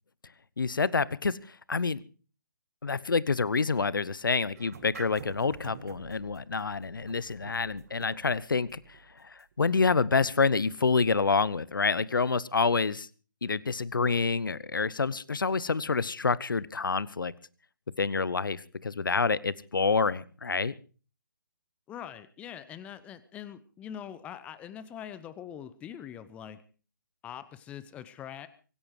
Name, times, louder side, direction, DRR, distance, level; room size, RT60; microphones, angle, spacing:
voice 1, 0.6-2.0 2.8-13.1 13.4-17.3 18.0-20.7, left 4 dB, 75° left, 21 dB, 1.0 m, -28 dB
sound 1, 4.6-11.3, right 7 dB, 45° right, 1.6 m, -50 dB
voice 2, 21.9-26.6 27.2-28.5, left 9 dB, 10° left, 15 dB, 0.8 m, -43 dB
24.0 x 11.0 x 4.7 m, 0.38 s
figure-of-eight pair, 145°, 11 cm